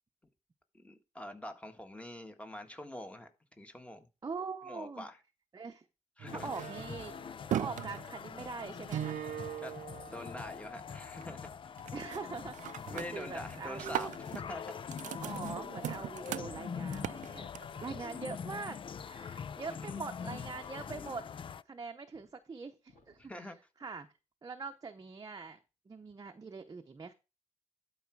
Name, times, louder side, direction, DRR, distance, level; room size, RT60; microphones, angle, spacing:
voice 1, 0.7-3.3 3.6-4.1 4.6-5.2 6.2-6.5 9.6-9.7 10.1-11.5 12.9-14.1 14.5-14.6 19.8-20.0 23.2-23.6, left 1 dB, 10° left, 1.6 m, -45 dB
voice 2, 4.2-5.1 5.5-5.8 6.4-7.1 7.5-9.2 11.9-14.1 15.2-17.5 17.8-18.8 19.0-21.3 21.7-23.5 23.8-24.1 24.4-25.6 25.9-27.1, right 4 dB, 30° right, 0.8 m, -43 dB
sound 1, 6.2-10.7 11.0-11.5 11.8-12.2 12.5-17.9, right 11 dB, 80° right, 0.5 m, -40 dB
sound 2, 6.3-21.6, left 7 dB, 45° left, 0.4 m, -43 dB
sound 3, 21.6-21.7 22.1-22.4 22.9-23.3, left 4 dB, 85° left, 2.9 m, -69 dB
12.0 x 4.9 x 4.7 m
cardioid pair, 100°, 13 cm